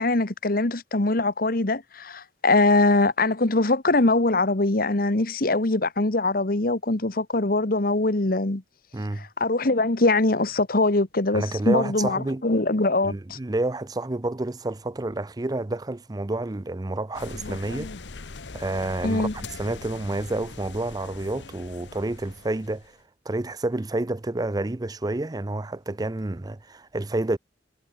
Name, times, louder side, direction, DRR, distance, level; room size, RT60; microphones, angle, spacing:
voice 1, 0.0-8.6 9.2-13.4 19.0-19.3, left 2 dB, 55° left, 1.4 m, -22 dB
voice 2, 8.9-9.3 11.3-12.4 13.0-17.9 18.5-19.3 19.6-22.9 23.3-27.4, right 2 dB, 20° right, 0.5 m, -29 dB
sound 1, 17.1-23.0, left 3 dB, 85° left, 1.1 m, -41 dB
head